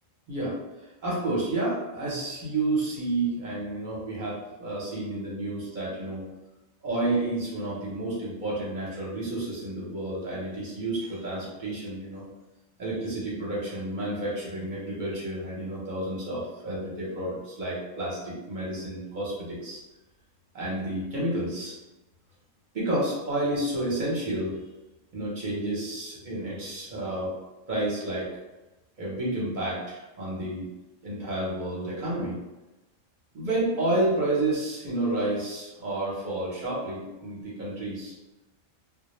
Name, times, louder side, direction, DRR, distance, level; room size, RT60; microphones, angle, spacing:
voice 1, 1.0-6.2 6.8-12.2 12.8-19.8 20.5-21.7 22.7-24.6 25.1-27.3 27.7-28.3 29.0-30.7 31.0-32.4 33.3-38.1, right 2 dB, 45° right, -6 dB, 0.7 m, -30 dB
2.1 x 2.1 x 2.9 m, 1.0 s
omnidirectional pair, 1.3 m